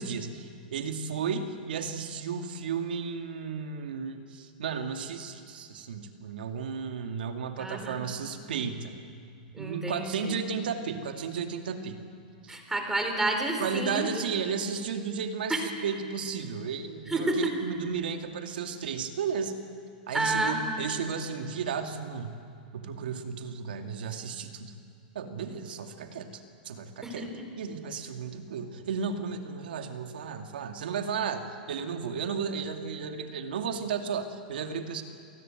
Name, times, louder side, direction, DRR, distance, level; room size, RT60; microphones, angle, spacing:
voice 1, 0.0-9.0 9.6-12.0 13.6-19.5 20.1-22.4 22.7-24.7 25.1-27.3 27.6-35.0, right 6 dB, 85° right, 5 dB, 2.5 m, -34 dB
voice 2, 7.6-8.0 9.5-10.4 12.5-14.1 15.5-15.6 17.1-17.4 20.1-20.6 27.0-27.4, right 2 dB, 10° right, 3 dB, 4.1 m, -30 dB
28.0 x 19.0 x 9.2 m, 2.4 s
supercardioid pair, 140°, 5 cm